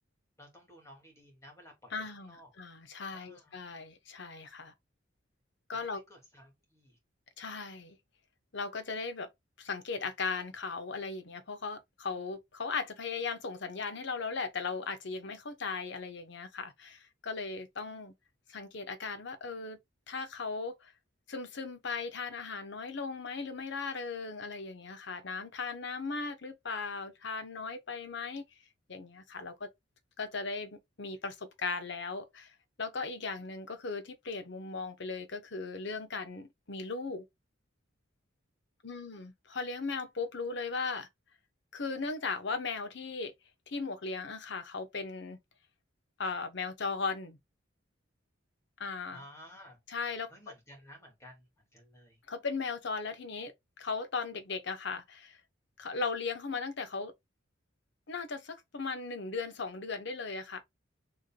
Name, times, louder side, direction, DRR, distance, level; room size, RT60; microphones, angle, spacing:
voice 1, 0.4-2.5 3.1-3.6 5.8-7.0 49.1-49.8 50.3-51.5 51.7-52.2, equal, 15° left, 2.3 m, -54 dB
voice 2, 1.9-4.7 5.7-6.0 7.4-8.0 8.5-9.3 9.6-18.1 18.5-19.8 20.1-20.9 21.3-28.4 28.9-29.7 30.2-37.3 38.8-41.1 41.7-43.3 43.7-45.4 46.2-47.4 48.8-49.2 49.9-50.3 52.3-55.4 55.8-57.1 58.1-60.6, left 4 dB, 65° left, 1.0 m, -37 dB
6.7 x 3.5 x 2.3 m
head